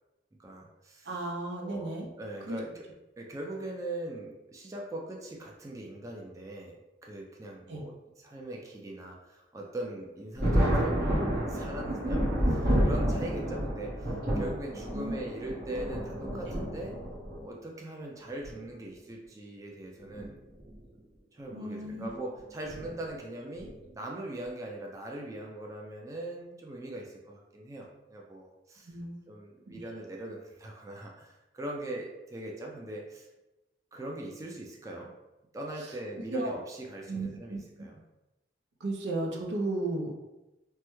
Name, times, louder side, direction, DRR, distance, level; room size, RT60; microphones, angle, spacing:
voice 1, 0.4-1.1 1.6-2.8 3.2-17.0 17.4-20.3 21.3-28.9 29.3-33.3 33.9-35.1 35.5-38.0, right 1 dB, 20° right, -1 dB, 0.3 m, -41 dB
voice 2, 1.1-2.1 2.5-2.6 7.7-7.8 14.9-15.1 16.5-16.6 21.5-22.1 28.9-29.2 29.7-29.8 36.3-36.5 37.1-37.6 38.8-40.1, right 2 dB, 80° right, 1 dB, 0.6 m, -34 dB
Thunder, 10.4-17.4 18.4-18.5 20.0-20.2 20.6-20.7 22.7-22.9 23.6-23.9, equal, 55° right, 1.1 m, -29 dB
3.3 x 2.1 x 3.0 m, 1.0 s
head